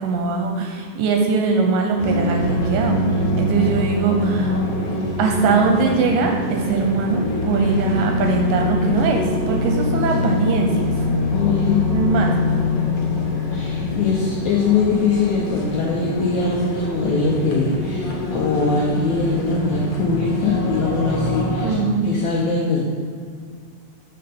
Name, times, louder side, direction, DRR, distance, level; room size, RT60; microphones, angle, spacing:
voice 1, 0.0-3.0 3.4-4.6 5.2-10.9 11.9-12.3 21.6-22.1, right 4 dB, 75° right, 2 dB, 2.1 m, -21 dB
sound 1, 2.0-21.7, left 2 dB, 60° left, 1.8 m, -24 dB
voice 2, 11.3-11.8 13.5-22.8, left 4 dB, 80° left, -3 dB, 1.7 m, -21 dB
7.7 x 4.4 x 5.1 m, 2.1 s
omnidirectional pair, 4.2 m